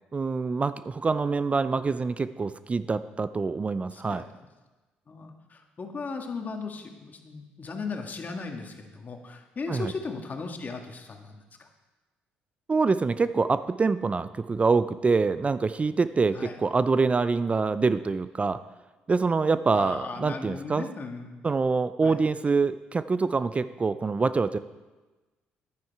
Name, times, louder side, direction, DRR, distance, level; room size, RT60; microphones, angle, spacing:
voice 1, 0.1-4.2 9.7-9.9 12.7-18.6 19.1-20.8 21.4-24.6, right 4 dB, 30° right, 13 dB, 0.4 m, -25 dB
voice 2, 3.9-4.2 5.1-11.7 16.3-16.6 19.7-21.4 22.0-22.2, left 4 dB, 40° left, 4 dB, 1.7 m, -37 dB
11.0 x 9.7 x 4.6 m, 1.2 s
supercardioid pair, 65°, 4 cm